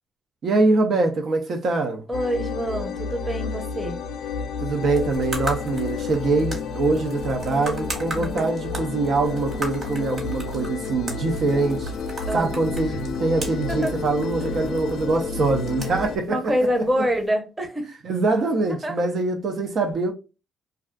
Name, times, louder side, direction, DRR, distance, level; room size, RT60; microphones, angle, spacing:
voice 1, 0.4-2.1 4.6-11.9 12.3-16.4 16.8-16.9 18.0-20.1, right 3 dB, 60° right, 0.4 m, -23 dB
sound 1, 2.1-16.2, left 4 dB, 75° left, 0.3 m, -30 dB
voice 2, 2.1-4.0 8.2-8.5 12.3-12.6 12.9-13.0 13.7-14.0 16.3-17.9 18.8-19.0, equal, 15° right, 0.7 m, -26 dB
sound 2, 4.8-17.3, right 1 dB, 45° right, 1.2 m, -38 dB
2.4 x 2.3 x 2.2 m
cardioid pair, 105°, 0 cm